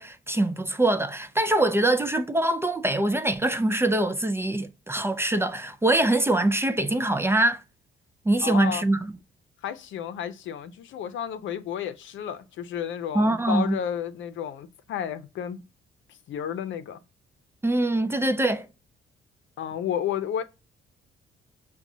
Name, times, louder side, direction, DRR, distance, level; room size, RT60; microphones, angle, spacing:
voice 1, 0.0-7.6 8.3-9.1 13.1-13.8 17.6-18.7, right 1 dB, 10° right, 0.4 m, -23 dB
voice 2, 8.4-8.8 9.6-15.6 16.3-17.0 19.6-20.4, left 9 dB, 75° left, 0.6 m, -32 dB
5.9 x 2.3 x 2.6 m
cardioid pair, 90°, 20 cm